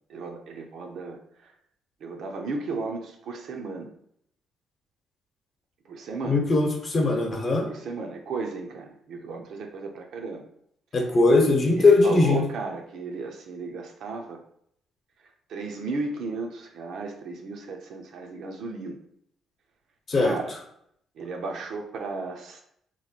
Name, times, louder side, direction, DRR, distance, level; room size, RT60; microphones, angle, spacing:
voice 1, 0.1-1.5 2.0-3.9 5.9-6.5 7.6-10.5 11.8-14.4 15.5-19.0 20.2-20.5 21.2-22.6, right 3 dB, 75° right, 3 dB, 0.6 m, -34 dB
voice 2, 6.2-7.7 10.9-12.4 20.1-20.4, left 3 dB, 45° left, 2 dB, 0.8 m, -20 dB
3.1 x 2.1 x 4.1 m, 0.69 s
cardioid pair, 90°, 0 cm